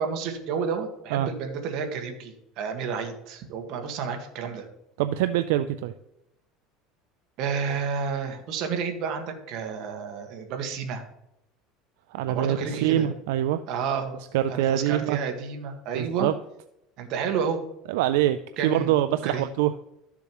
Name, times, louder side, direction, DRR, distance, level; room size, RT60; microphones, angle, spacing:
voice 1, 0.0-4.7 7.4-11.0 12.3-13.1 13.7-14.2 14.5-16.3 17.0-17.6 18.6-18.9 19.2-19.4, right 6 dB, 60° right, 5 dB, 1.5 m, -30 dB
voice 2, 5.0-5.9 12.1-13.6 14.3-15.2 15.9-16.3 17.9-18.4 18.6-19.7, right 12 dB, 85° right, 11 dB, 0.4 m, -24 dB
13.0 x 7.0 x 3.0 m, 0.85 s
cardioid pair, 135°, 0 cm